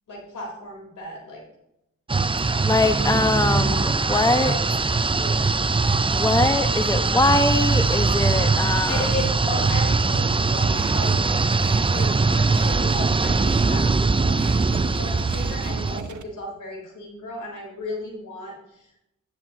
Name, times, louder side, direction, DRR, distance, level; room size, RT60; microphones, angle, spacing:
voice 1, 0.1-1.4 4.4-5.7 8.9-19.0, left 2 dB, 85° left, -1 dB, 3.8 m, -35 dB
sound 1, 2.1-16.0, right 3 dB, 15° right, 0.5 m, -21 dB
voice 2, 2.3-4.5 6.1-9.1, left 2 dB, 10° left, 8 dB, 1.1 m, -23 dB
sound 2, 8.9-16.2, right 6 dB, 70° right, 1.0 m, -36 dB
12.5 x 10.0 x 2.9 m, 0.82 s
supercardioid pair, 40°, 30 cm